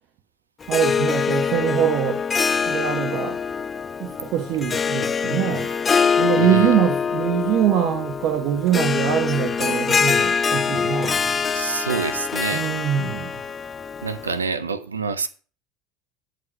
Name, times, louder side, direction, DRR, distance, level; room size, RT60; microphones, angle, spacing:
Harp, 0.6-14.4, left 6 dB, 30° left, 0.4 m, -24 dB
voice 1, 0.7-2.2 2.7-3.4 4.0-5.7 6.2-11.4 12.5-13.4, right 10 dB, 55° right, 1.1 m, -23 dB
voice 2, 6.4-6.7 11.4-12.8 14.0-15.3, right 5 dB, 90° right, 0.6 m, -27 dB
9.4 x 5.2 x 5.4 m
hypercardioid pair, 70°, 0 cm